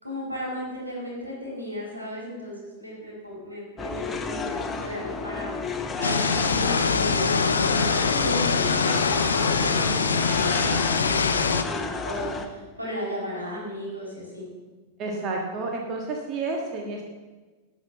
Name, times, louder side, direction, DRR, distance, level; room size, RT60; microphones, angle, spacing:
voice 1, 0.0-9.9 10.2-14.4, equal, 85° right, -4 dB, 4.4 m, -35 dB
sound 1, 3.8-12.5, left 4 dB, 15° left, 1.0 m, -32 dB
sound 2, 6.0-11.6, left 5 dB, 75° left, 0.7 m, -23 dB
voice 2, 15.0-17.0, right 3 dB, 35° right, 1 dB, 1.5 m, -30 dB
12.0 x 6.4 x 6.9 m, 1.3 s
figure-of-eight pair, 90°, 0 cm